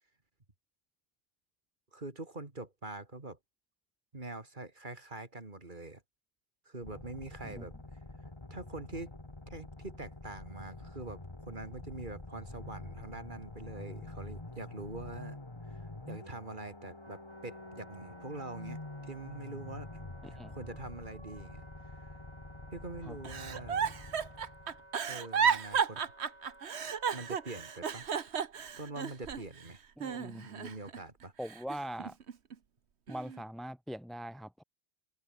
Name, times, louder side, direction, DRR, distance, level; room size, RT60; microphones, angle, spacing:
voice 1, 1.9-3.4 4.1-6.0 6.6-7.7 8.5-9.1 9.5-15.4 15.7-15.8 16.1-21.6 22.0-22.1 22.7-23.8 25.1-26.0 27.1-28.1 28.8-29.8 30.4-31.3, right 2 dB, 45° right, 3.1 m, -44 dB
sound 1, 6.8-24.9, left 2 dB, 25° left, 1.9 m, -47 dB
Wind instrument woodwind instrument, 16.6-28.0, right 1 dB, 25° right, 4.5 m, -57 dB
Giggle, 23.2-29.6 30.0-31.0 31.4-32.5 33.1-33.4, right 7 dB, 70° right, 1.5 m, -33 dB
voice 2, 30.0-30.5 31.4-32.2 33.1-34.6, equal, ahead, 1.8 m, -42 dB
omnidirectional pair, 1.2 m